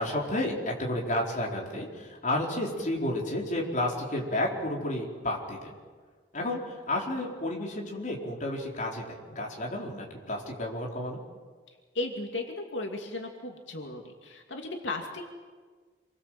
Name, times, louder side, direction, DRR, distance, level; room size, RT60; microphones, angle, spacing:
voice 1, 0.0-5.7 6.3-11.2, left 1 dB, 40° left, -1 dB, 4.8 m, -31 dB
voice 2, 11.9-15.3, left 2 dB, 90° left, 2 dB, 2.6 m, -35 dB
28.0 x 23.0 x 7.8 m, 1.5 s
head